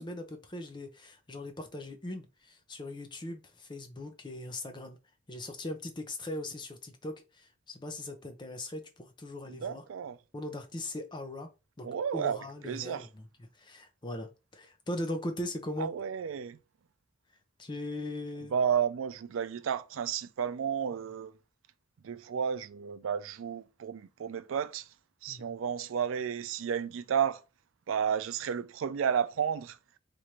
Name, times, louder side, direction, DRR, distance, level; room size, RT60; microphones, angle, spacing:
voice 1, 0.0-5.0 5.3-9.8 10.3-11.5 11.8-11.9 12.1-13.2 13.6-15.9 17.6-18.5 25.3-25.5, left 1 dB, 20° left, 0.5 m, -39 dB
voice 2, 9.5-10.2 11.8-12.4 12.6-13.1 15.8-16.6 18.5-21.3 22.0-24.9 25.2-27.4 27.9-29.8, right 7 dB, 80° right, 0.4 m, -32 dB
3.1 x 2.5 x 4.3 m
head